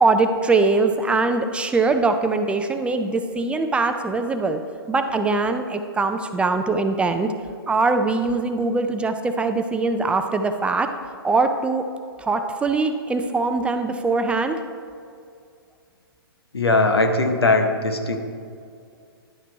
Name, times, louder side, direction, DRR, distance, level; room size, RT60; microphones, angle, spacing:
voice 1, 0.0-4.6 4.9-7.3 7.7-10.9 11.2-11.9 12.2-14.6, right 3 dB, 10° right, 7 dB, 0.3 m, -22 dB
voice 2, 16.5-18.2, left 2 dB, 85° left, 6 dB, 1.0 m, -19 dB
10.5 x 5.7 x 4.6 m, 2.3 s
hypercardioid pair, 120°, 13 cm